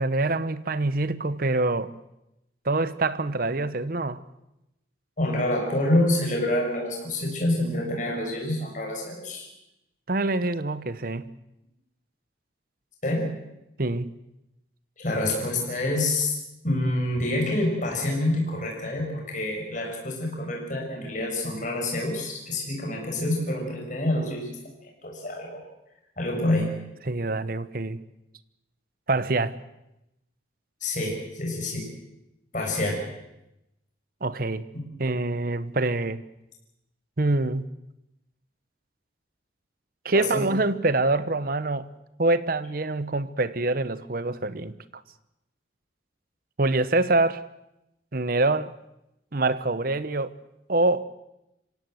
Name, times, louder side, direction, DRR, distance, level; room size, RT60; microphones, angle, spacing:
voice 1, 0.0-1.9 2.6-4.2 10.1-11.3 13.8-14.1 27.0-28.0 29.1-29.6 34.2-34.6 35.0-36.2 37.2-37.7 40.0-41.9 42.2-44.7 46.6-47.4 48.1-48.7 49.3-50.3 50.7-51.1, right 2 dB, 50° right, 15 dB, 1.0 m, -25 dB
voice 2, 5.2-9.5 13.0-13.3 15.0-16.3 16.6-24.6 24.8-25.6 26.2-26.7 30.8-31.9 32.5-33.0 40.1-40.4, left 1 dB, 45° left, -1 dB, 6.9 m, -27 dB
26.0 x 17.0 x 7.9 m, 0.89 s
head